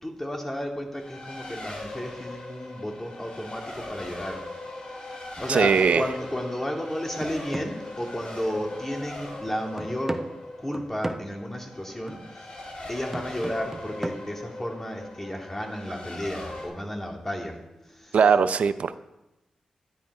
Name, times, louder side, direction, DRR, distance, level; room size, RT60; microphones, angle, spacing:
voice 1, 0.0-4.4 5.4-10.2 10.6-12.2 12.9-18.3, equal, 15° left, 1 dB, 2.3 m, -33 dB
Race car auto racing, 0.9-16.7, left 2 dB, 55° left, 3.1 m, -40 dB
sound 1, 5.4-5.7 6.1-6.3 6.8-8.8 9.1-9.2 9.8-11.4 12.1-12.3 13.1-14.2, right 1 dB, 15° right, 0.7 m, -37 dB
voice 2, 5.5-6.0 18.1-19.0, right 6 dB, 75° right, 12 dB, 0.5 m, -20 dB
11.0 x 10.5 x 4.8 m, 0.95 s
cardioid pair, 80°, 2 cm